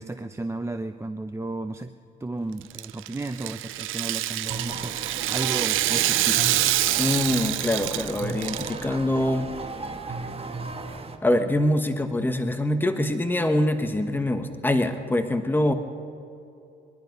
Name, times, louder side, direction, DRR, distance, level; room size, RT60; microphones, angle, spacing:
voice 1, 0.0-1.9 2.2-4.9 5.3-6.4, right 2 dB, 15° right, 8 dB, 0.6 m, -33 dB
Rattle (instrument), 2.6-8.8, right 15 dB, 85° right, 0.6 m, -26 dB
sound 1, 4.5-11.2, right 3 dB, 30° right, 1.5 m, -36 dB
voice 2, 7.0-9.5 11.2-15.7, left 1 dB, 10° left, 7 dB, 1.3 m, -24 dB
23.0 x 11.5 x 5.4 m, 2.6 s
cardioid pair, 90°, 20 cm